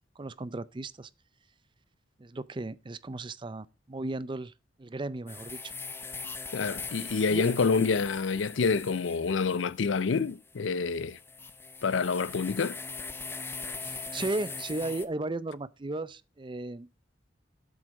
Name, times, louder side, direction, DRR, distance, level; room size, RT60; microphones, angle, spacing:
voice 1, 0.2-1.1 2.2-4.5 4.8-5.7 7.3-7.5 13.8-16.9, right 2 dB, 25° right, 0.5 m, -35 dB
sound 1, 5.3-15.1, left 4 dB, 10° left, 0.7 m, -41 dB
voice 2, 6.5-11.2 11.8-12.8, left 4 dB, 90° left, 0.5 m, -27 dB
7.9 x 7.7 x 5.2 m
head